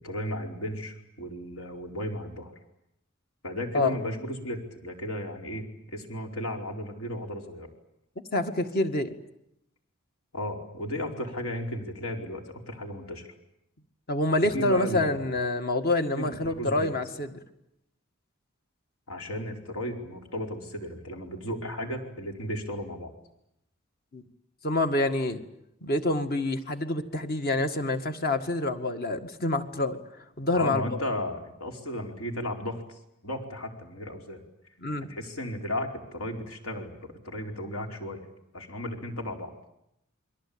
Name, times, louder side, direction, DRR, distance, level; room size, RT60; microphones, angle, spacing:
voice 1, 0.0-2.5 3.4-7.7 10.3-13.3 14.4-15.4 16.1-16.9 19.1-23.1 30.5-34.4 35.1-36.9 37.2-38.2 38.5-39.5, left 1 dB, 75° left, 4.8 m, -34 dB
voice 2, 8.3-9.1 14.1-17.3 24.1-24.2 24.6-25.4 25.8-30.0 30.4-30.8 34.8-35.1, left 2 dB, 45° left, 2.0 m, -27 dB
28.5 x 22.5 x 8.8 m
head